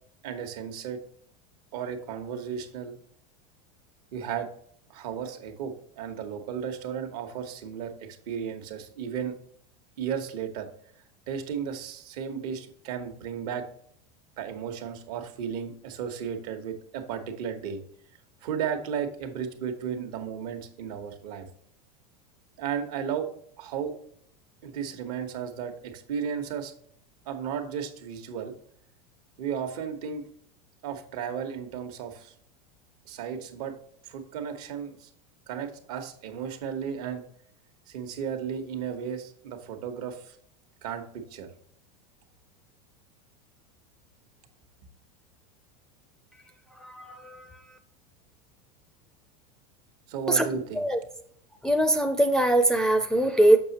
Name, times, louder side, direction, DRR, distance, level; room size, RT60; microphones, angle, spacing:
voice 1, 0.2-1.0 1.7-2.9 4.1-4.5 4.9-9.3 10.0-10.7 11.3-13.6 14.4-17.8 18.4-21.5 22.6-23.3 23.6-23.9 24.6-26.7 27.3-28.5 29.4-30.2 30.8-32.3 33.0-33.7 34.0-35.1 35.5-37.2 37.9-40.4 40.8-41.5 50.1-50.8, right 7 dB, 75° right, 6 dB, 1.2 m, -34 dB
voice 2, 46.8-47.5 50.3-51.0 51.6-53.6, right 1 dB, 5° left, 4 dB, 0.4 m, -22 dB
6.7 x 5.8 x 2.9 m, 0.66 s
supercardioid pair, 140°, 20 cm